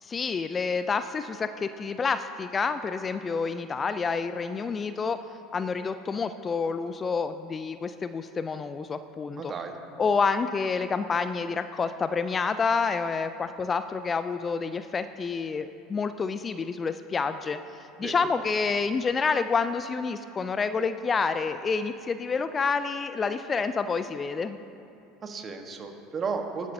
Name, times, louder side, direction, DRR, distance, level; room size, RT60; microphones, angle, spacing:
voice 1, 0.0-5.2 5.5-9.5 10.0-17.6 18.0-24.6, left 5 dB, 25° left, 11 dB, 0.4 m, -28 dB
voice 2, 9.3-9.7 18.0-18.3 25.2-26.7, right 5 dB, 35° right, 4 dB, 1.3 m, -34 dB
19.5 x 11.5 x 2.8 m, 2.7 s
figure-of-eight pair, 70°, 0 cm